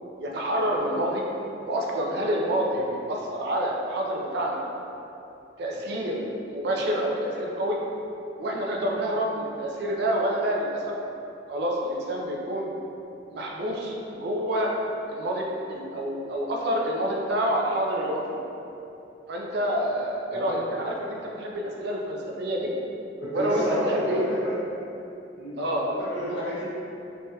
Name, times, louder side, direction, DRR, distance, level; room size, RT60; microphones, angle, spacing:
voice 1, 0.2-1.2 1.6-4.6 5.6-7.8 8.4-10.8 11.5-12.7 13.3-14.7 15.1-18.4 19.3-22.7 23.3-23.6 23.9-24.2 25.6-25.8, right 1 dB, 60° right, -1 dB, 0.4 m, -28 dB
voice 2, 23.2-24.6 25.3-26.6, equal, 85° left, -11 dB, 1.3 m, -30 dB
3.3 x 2.2 x 2.7 m, 2.8 s
head